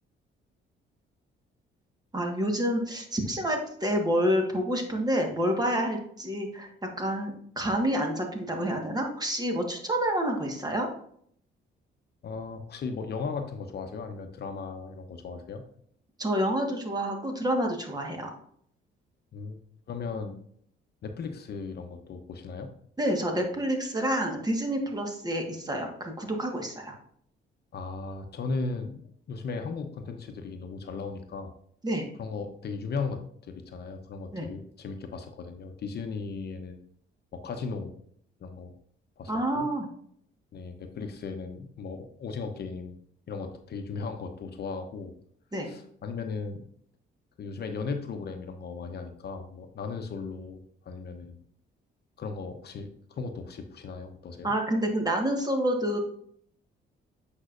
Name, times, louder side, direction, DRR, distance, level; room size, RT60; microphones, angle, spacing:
voice 1, 2.1-10.9 16.2-18.3 23.0-26.9 31.8-32.1 34.3-34.5 39.3-39.9 45.5-45.7 54.4-56.0, equal, 20° right, 2 dB, 1.5 m, -28 dB
voice 2, 12.2-15.6 19.3-19.6 19.9-20.4 21.0-22.7 27.7-29.0 29.3-31.5 32.2-36.8 37.3-37.9 38.4-38.7 39.2-39.7 40.5-43.0 43.3-45.1 45.6-46.6 47.4-50.6 50.8-51.4 52.2-54.5, left 4 dB, 55° left, 6 dB, 0.9 m, -36 dB
8.2 x 5.4 x 2.5 m, 0.65 s
cardioid pair, 90°, 20 cm